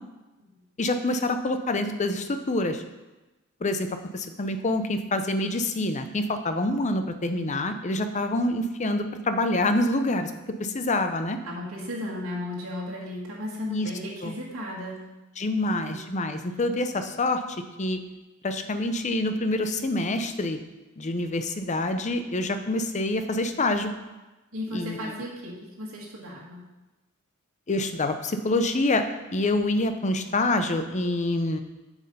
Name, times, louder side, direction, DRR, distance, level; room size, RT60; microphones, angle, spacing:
voice 1, 0.8-2.8 3.6-3.9 4.1-10.3 10.6-11.4 13.7-13.9 14.2-14.3 15.4-17.4 17.8-18.0 18.4-20.6 21.0-23.9 24.7-25.0 27.7-29.1 29.3-31.6, left 2 dB, 35° left, 8 dB, 0.7 m, -26 dB
voice 2, 11.4-15.0 24.5-26.6, left 1 dB, 85° right, -4 dB, 1.8 m, -35 dB
7.6 x 6.3 x 5.4 m, 1.1 s
head